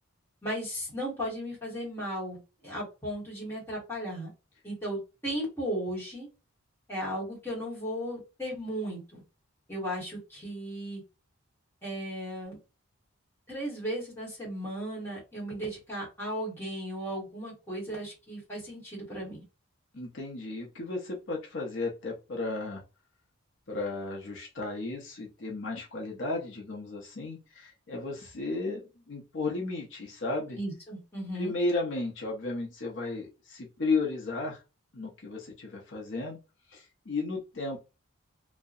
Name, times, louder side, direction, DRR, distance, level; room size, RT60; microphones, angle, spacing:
voice 1, 0.4-4.3 4.6-6.3 6.9-9.2 9.7-11.0 11.8-12.6 13.5-19.4 30.5-31.5, equal, 10° left, -5 dB, 1.1 m, -36 dB
voice 2, 19.9-22.8 23.7-30.6 31.4-34.6 34.9-36.4 36.7-37.8, left 3 dB, 55° left, -1 dB, 0.6 m, -34 dB
2.7 x 2.1 x 2.4 m, 0.29 s
head